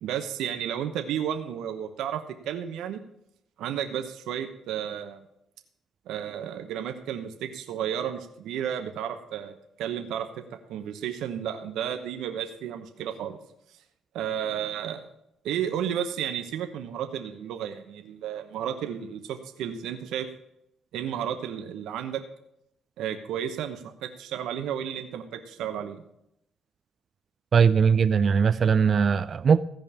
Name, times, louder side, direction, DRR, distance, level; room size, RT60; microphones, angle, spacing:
voice 1, 0.0-3.0 3.6-5.2 6.1-10.4 10.7-13.4 14.1-15.0 15.4-20.3 20.9-22.2 23.0-26.0, right 9 dB, 85° right, 6 dB, 1.0 m, -32 dB
voice 2, 27.5-29.6, right 6 dB, 45° right, 12 dB, 0.4 m, -20 dB
15.0 x 5.2 x 7.2 m, 0.78 s
cardioid pair, 95°, 0 cm